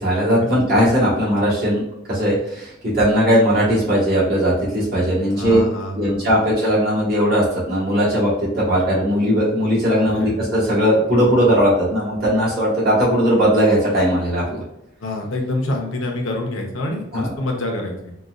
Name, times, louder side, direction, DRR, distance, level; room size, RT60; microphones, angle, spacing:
voice 1, 0.0-1.8 2.1-5.6 5.9-14.6 17.1-17.3, equal, 50° right, -8 dB, 1.4 m, -18 dB
voice 2, 5.3-6.3 9.9-10.3 15.0-18.1, left 1 dB, 85° left, 1 dB, 0.7 m, -27 dB
3.9 x 2.3 x 2.4 m, 0.85 s
head